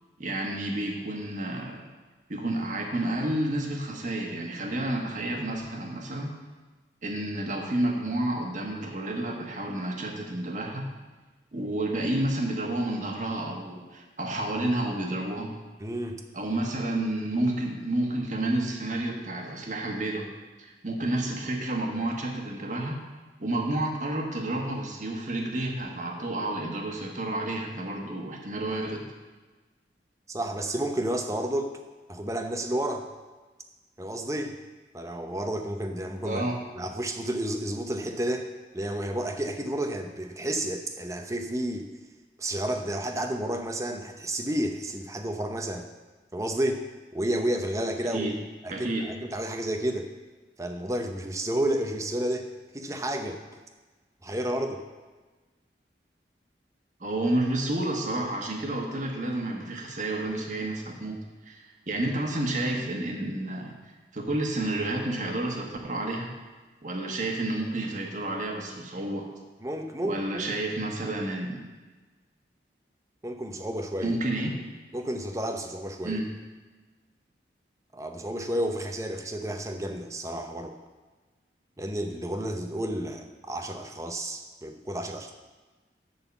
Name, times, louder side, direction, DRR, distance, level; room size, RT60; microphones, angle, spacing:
voice 1, 0.2-1.8 2.3-6.3 7.0-10.9 11.5-15.5 16.3-20.3 20.6-23.0 23.4-29.0 36.2-36.6 48.0-48.4 48.7-49.1 57.0-61.2 61.4-63.7 64.1-66.4 66.8-69.3 70.0-71.7 74.0-74.6 76.0-76.3, right 1 dB, 45° right, 1 dB, 1.3 m, -30 dB
voice 2, 15.8-16.2 30.3-31.7 32.1-33.1 34.0-34.6 34.9-36.4 36.8-38.5 38.7-41.9 42.4-45.9 46.3-46.8 47.1-48.3 48.6-50.1 50.6-52.5 52.7-53.4 54.2-54.8 69.6-70.4 73.2-74.2 74.9-76.2 77.9-80.8 81.8-85.3, right 1 dB, 20° right, 5 dB, 0.7 m, -31 dB
11.0 x 4.0 x 7.0 m, 1.3 s
head